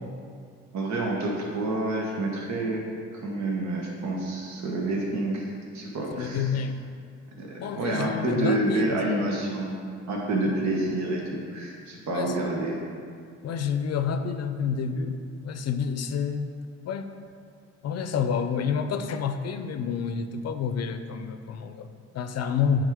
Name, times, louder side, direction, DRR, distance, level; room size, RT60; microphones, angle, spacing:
voice 1, 0.7-2.9 3.2-6.5 7.4-9.8 10.1-12.8, right 2 dB, 65° right, -2 dB, 1.2 m, -28 dB
voice 2, 6.1-6.8 7.6-9.0 10.4-10.5 12.1-12.3 13.4-16.5 16.8-17.1 17.8-22.8, left 6 dB, 60° left, 8 dB, 0.5 m, -29 dB
8.9 x 3.6 x 4.9 m, 2.2 s
cardioid pair, 90°, 30 cm